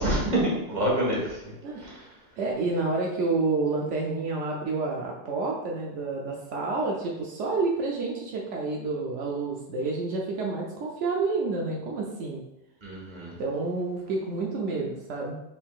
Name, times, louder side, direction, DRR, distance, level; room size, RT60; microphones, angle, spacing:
voice 1, 0.0-1.5 1.8-2.0 12.8-13.4, right 1 dB, 35° right, -4 dB, 1.5 m, -27 dB
voice 2, 2.4-12.4 13.4-15.3, right 3 dB, 80° right, -2 dB, 1.0 m, -29 dB
5.5 x 3.6 x 2.4 m, 0.88 s
omnidirectional pair, 1.2 m